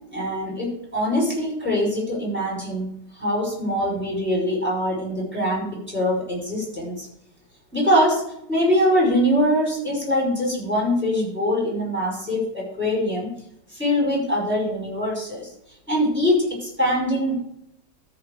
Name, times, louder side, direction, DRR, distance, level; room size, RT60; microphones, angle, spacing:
voice 1, 0.1-7.1 7.7-13.3 13.7-15.5 15.9-17.4, equal, 5° right, -3 dB, 5.5 m, -23 dB
13.5 x 4.9 x 6.8 m, 0.75 s
omnidirectional pair, 2.0 m